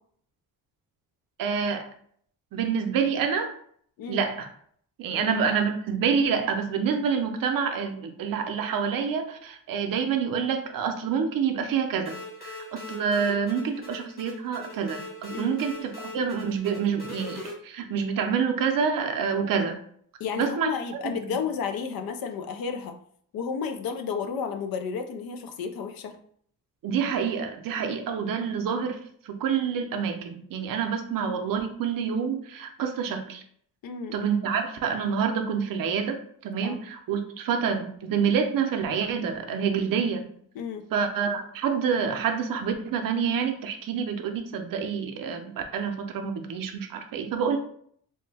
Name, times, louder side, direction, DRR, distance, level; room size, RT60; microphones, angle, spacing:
voice 1, 1.4-1.9 2.5-3.5 4.1-4.5 5.0-12.2 12.4-19.8 20.4-20.7 21.0-21.2 26.8-29.0 29.2-33.4 34.1-36.2 36.4-40.3 40.9-47.6, right 6 dB, 65° right, 5 dB, 0.6 m, -27 dB
sound 1, 12.0-17.5, left 2 dB, 25° left, 1.0 m, -41 dB
voice 2, 20.2-23.0 23.3-26.2 33.8-34.2 36.6-36.8 40.6-40.9, left 6 dB, 70° left, 6 dB, 0.5 m, -32 dB
3.1 x 2.1 x 3.3 m, 0.62 s
cardioid pair, 145°, 36 cm